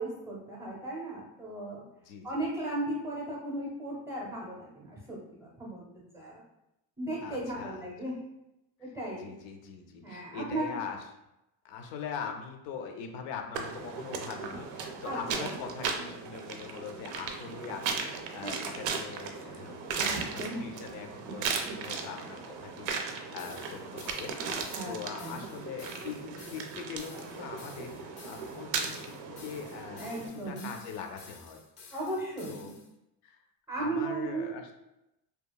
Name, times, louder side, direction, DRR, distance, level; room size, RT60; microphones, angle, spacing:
voice 1, 0.0-1.8 2.2-6.4 7.0-8.2 8.8-9.3 10.0-10.7 15.0-15.6 18.4-18.5 19.9-20.6 21.2-21.4 24.7-25.4 30.0-30.7 31.9-32.7 33.7-34.5, right 2 dB, 5° right, -4 dB, 0.6 m, -36 dB
voice 2, 2.0-2.4 7.2-7.8 8.8-8.9 9.2-11.0 11.6-19.8 20.3-29.1 29.4-31.6 31.9-32.0 32.5-32.7 33.2-33.4 33.8-34.8, left 6 dB, 85° left, 4 dB, 0.6 m, -42 dB
sound 1, 13.5-30.3, right 5 dB, 90° right, 0.5 m, -37 dB
sound 2, 23.4-32.9, left 4 dB, 40° left, 0.4 m, -53 dB
2.9 x 2.3 x 2.2 m, 0.89 s
cardioid pair, 150°, 43 cm